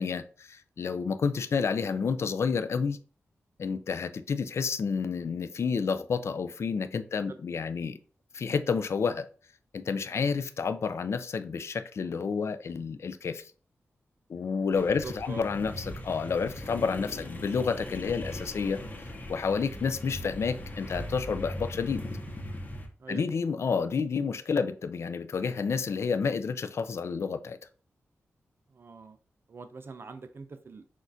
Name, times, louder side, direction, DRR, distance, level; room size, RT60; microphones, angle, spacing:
voice 1, 0.0-3.0 3.6-8.0 8.3-9.3 9.7-13.5 14.3-18.8 19.3-22.0 23.1-27.6, left 5 dB, 60° left, 0.4 m, -30 dB
sound 1, 14.7-22.9, left 1 dB, 35° left, 0.8 m, -39 dB
voice 2, 14.9-15.5 23.0-23.3 28.7-29.2 29.5-30.9, right 4 dB, 50° right, 0.4 m, -43 dB
6.1 x 2.4 x 2.6 m
wide cardioid pair, 90°, 5 cm